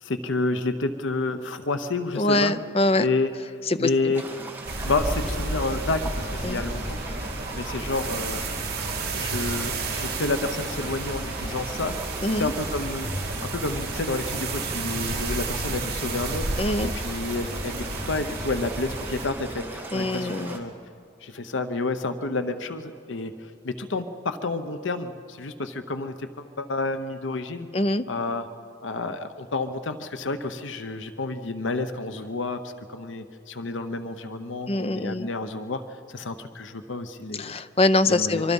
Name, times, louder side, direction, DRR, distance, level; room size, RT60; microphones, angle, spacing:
voice 1, 0.0-2.5 3.0-3.3 3.8-4.2 4.8-7.2 7.5-8.4 9.1-12.0 12.4-16.5 16.8-20.7 21.2-23.3 23.6-27.7 28.1-28.5 28.8-37.5 38.1-38.5, left 3 dB, 70° left, 9 dB, 0.9 m, -30 dB
voice 2, 2.2-3.1 3.7-3.9 6.4-6.6 12.2-12.5 16.6-16.9 19.9-20.6 27.7-28.0 34.7-35.3 37.3-38.5, left 2 dB, 30° left, 11 dB, 0.6 m, -23 dB
sound 1, 4.1-20.6, right 2 dB, 10° right, 2.0 m, -39 dB
sound 2, 4.7-19.3, right 3 dB, 50° right, 3.2 m, -31 dB
24.5 x 24.0 x 5.5 m, 2.4 s
head